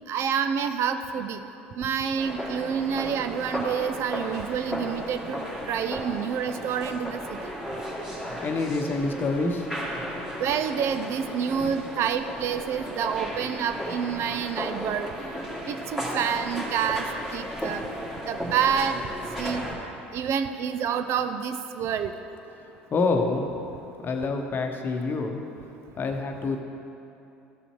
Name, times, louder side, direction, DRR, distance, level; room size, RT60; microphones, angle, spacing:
voice 1, 0.1-1.4 1.8-7.4 10.4-15.1 15.7-17.8 18.2-19.0 19.4-19.6 20.1-22.1, right 7 dB, 50° right, 9 dB, 0.5 m, -28 dB
sound 1, 2.2-19.7, equal, 5° right, 2.2 m, -35 dB
voice 2, 8.4-9.7 10.2-10.3 22.9-23.5 24.0-25.4 26.0-26.6, left 3 dB, 35° left, 4 dB, 1.0 m, -27 dB
13.5 x 6.9 x 3.0 m, 2.8 s
hypercardioid pair, 65°, 6 cm